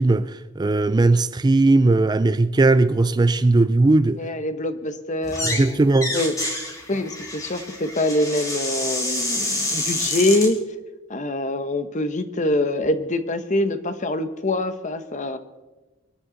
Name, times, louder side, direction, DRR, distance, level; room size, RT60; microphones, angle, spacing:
voice 1, 0.0-4.2 5.4-6.1, right 2 dB, 20° right, 0.4 m, -18 dB
voice 2, 4.1-5.8 6.1-6.4 6.9-10.6 11.1-15.4, left 1 dB, 40° left, 1.1 m, -24 dB
sound 1, 5.2-5.7 5.9-10.5, left 1 dB, 15° left, 3.0 m, -28 dB
25.0 x 10.5 x 4.0 m
head